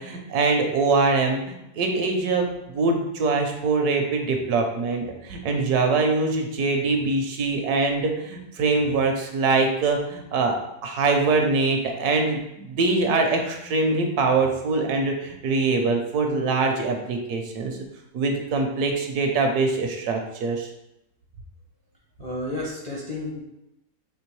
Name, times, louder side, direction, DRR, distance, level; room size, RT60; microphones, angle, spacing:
voice 1, 0.0-10.6 10.8-17.8 18.1-20.7, right 3 dB, 75° right, 4 dB, 1.1 m, -23 dB
voice 2, 22.2-23.4, left 1 dB, 40° left, -5 dB, 0.6 m, -31 dB
4.4 x 3.2 x 3.0 m, 0.86 s
omnidirectional pair, 1.8 m